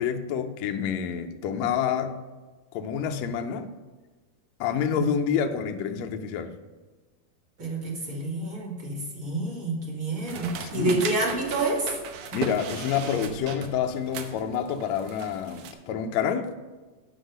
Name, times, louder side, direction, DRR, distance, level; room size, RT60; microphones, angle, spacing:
voice 1, 0.0-2.1 2.7-3.7 4.6-6.5 10.7-11.0 12.3-16.6, left 8 dB, 75° left, 5 dB, 1.7 m, -28 dB
voice 2, 7.6-11.9, right 2 dB, 30° right, -3 dB, 1.9 m, -28 dB
sound 1, 10.3-15.7, right 6 dB, 70° right, 2.0 m, -37 dB
9.9 x 5.5 x 6.6 m, 1.3 s
omnidirectional pair, 3.9 m